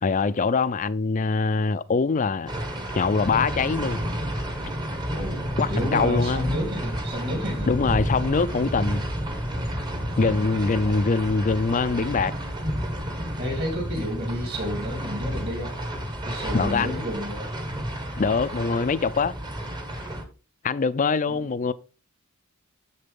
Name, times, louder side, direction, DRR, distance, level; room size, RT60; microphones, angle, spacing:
voice 1, 0.0-2.5 2.9-4.1 5.6-6.5 7.7-9.0 10.2-12.3 16.4-17.0 18.2-19.4 20.0-20.1 20.6-21.7, left 4 dB, 35° left, 0.4 m, -23 dB
sound 1, 2.5-20.2, equal, 20° right, 1.0 m, -31 dB
voice 2, 5.1-7.7 10.1-10.4 10.8-11.0 13.4-15.8 16.2-17.5 21.3-21.4, equal, 45° right, 2.9 m, -31 dB
7.2 x 6.7 x 3.6 m
head